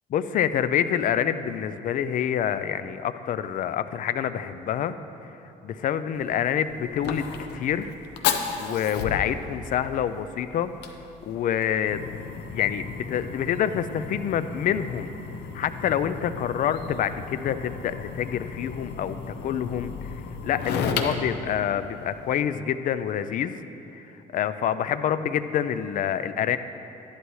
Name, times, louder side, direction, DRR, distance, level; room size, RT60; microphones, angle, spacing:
voice 1, 0.1-4.9 5.6-7.9 8.6-10.7 11.2-12.0 12.5-15.1 15.5-19.9 20.4-23.5 23.9-24.1 24.3-26.6, left 9 dB, 50° left, 12 dB, 0.5 m, -27 dB
Fire, 6.1-22.3, left 6 dB, 80° left, 0.8 m, -34 dB
13.5 x 11.0 x 3.2 m, 3.0 s
cardioid pair, 110°, 17 cm